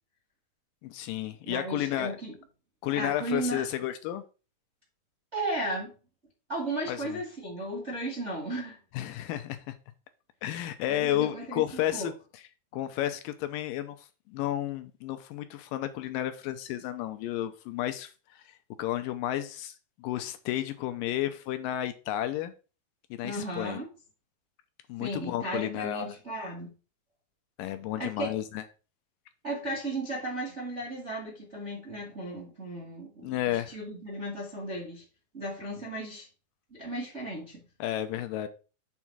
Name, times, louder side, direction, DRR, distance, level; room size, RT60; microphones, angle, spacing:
voice 1, 0.8-2.1 2.8-4.2 6.9-7.2 8.9-9.8 10.4-12.1 12.7-18.4 18.8-22.5 23.1-23.8 24.9-26.1 27.6-28.6 33.2-33.7 37.8-38.5, left 13 dB, 80° left, 2.1 m, -32 dB
voice 2, 1.4-2.3 2.9-3.6 5.3-5.9 6.5-8.8 10.8-12.1 23.2-23.9 25.0-26.7 28.0-28.3 29.4-35.0 35.3-36.3 36.7-37.6, right 1 dB, 35° right, 1.1 m, -35 dB
7.1 x 3.7 x 5.9 m
omnidirectional pair, 4.3 m